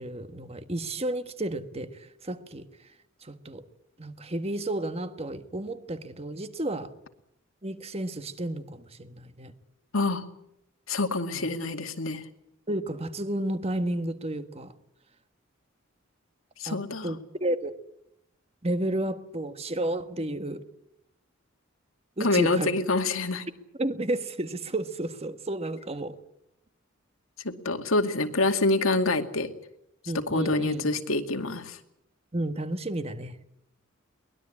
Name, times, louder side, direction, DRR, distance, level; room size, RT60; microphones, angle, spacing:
voice 1, 0.0-2.6 3.2-3.6 4.0-6.9 7.6-9.5 11.3-11.4 12.7-14.7 16.6-17.7 18.6-20.6 22.2-22.7 23.8-26.2 30.1-30.8 32.3-33.4, right 1 dB, 30° right, 1.5 m, -32 dB
voice 2, 9.9-10.2 10.9-12.2 16.6-17.1 22.2-23.4 27.4-29.5 30.1-31.8, left 2 dB, 90° left, 2.2 m, -26 dB
23.0 x 20.0 x 8.7 m
head